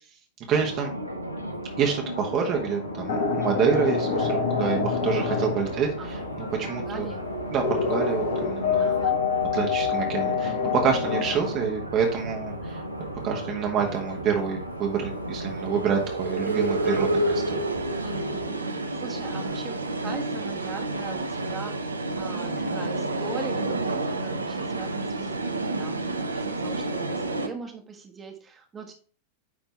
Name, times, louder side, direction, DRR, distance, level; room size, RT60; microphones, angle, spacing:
voice 1, 0.4-0.9 1.8-7.1 7.5-8.9 9.5-12.8 13.2-17.6 22.7-22.8, right 7 dB, 35° right, 1 dB, 1.2 m, -27 dB
sound 1, 0.5-18.5, equal, 90° left, 0.8 m, -35 dB
sound 2, 2.0-11.6, left 5 dB, 60° left, 1.3 m, -27 dB
voice 2, 5.5-6.3 6.6-7.2 8.8-9.2 11.3-11.5 18.0-28.9, right 5 dB, 20° right, 3 dB, 1.3 m, -41 dB
sound 3, 13.5-27.5, right 2 dB, 80° right, 0.7 m, -30 dB
9.5 x 3.4 x 4.2 m, 0.40 s
figure-of-eight pair, 90°, 0 cm